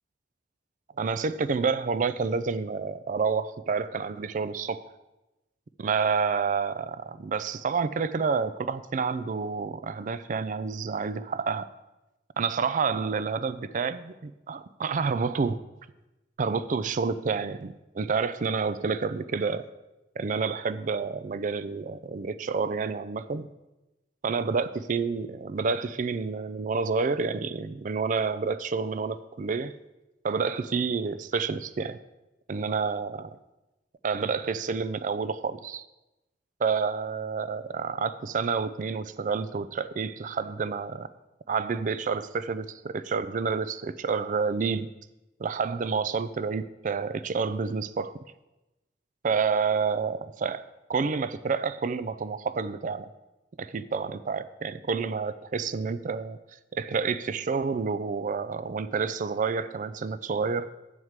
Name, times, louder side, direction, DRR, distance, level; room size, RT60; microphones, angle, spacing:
voice 1, 1.0-4.9 5.8-11.7 12.4-15.6 16.4-19.6 20.2-23.5 24.2-29.7 30.2-32.0 32.5-33.4 34.0-35.9 36.6-41.1 41.5-44.9 45.4-48.1 49.2-53.1 53.6-56.4 56.7-60.7, right 5 dB, 45° right, 14 dB, 0.4 m, -29 dB
8.0 x 4.7 x 7.3 m, 0.99 s
head